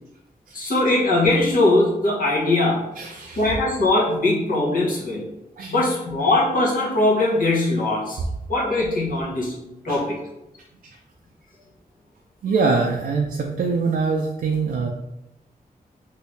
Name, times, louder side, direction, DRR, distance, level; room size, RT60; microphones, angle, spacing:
voice 1, 0.5-2.8 3.4-5.3 5.7-8.2 8.5-9.5 9.8-10.2, left 2 dB, 65° left, -5 dB, 1.0 m, -20 dB
voice 2, 3.0-3.4 5.6-5.9 9.9-10.0 12.4-14.9, right 4 dB, 70° right, 0 dB, 0.4 m, -24 dB
3.2 x 2.7 x 3.1 m, 0.93 s
wide cardioid pair, 140°, 16 cm